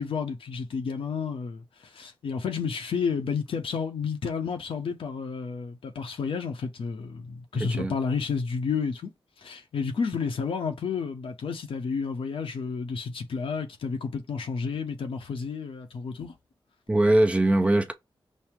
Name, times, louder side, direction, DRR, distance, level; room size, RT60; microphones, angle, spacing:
voice 1, 0.0-1.6 1.9-9.1 9.4-16.3, left 5 dB, 90° left, 1.0 m, -31 dB
voice 2, 7.6-7.9 16.9-17.9, right 1 dB, 15° right, 0.6 m, -21 dB
5.6 x 2.1 x 4.5 m
wide cardioid pair, 110°, 9 cm